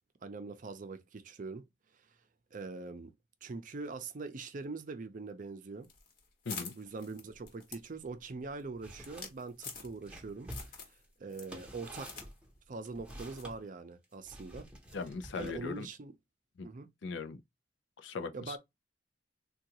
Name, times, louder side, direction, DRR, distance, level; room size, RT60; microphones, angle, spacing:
voice 1, 0.2-1.7 2.5-3.1 3.4-5.9 6.7-10.5 11.2-12.1 12.7-14.7 15.3-16.1 16.6-16.9 18.3-18.6, right 3 dB, 45° right, 0.5 m, -43 dB
sound 1, 5.8-10.2 10.5-11.0 11.3-12.3 12.6-12.7 13.3-13.6, left 5 dB, 50° left, 1.1 m, -46 dB
sound 2, 8.8-9.3 9.7-13.6 14.3-15.8, right 1 dB, 5° right, 0.8 m, -49 dB
voice 2, 14.9-15.9 16.6-16.7 17.0-17.4 18.0-18.6, left 4 dB, 80° left, 0.5 m, -39 dB
3.7 x 2.3 x 2.8 m
head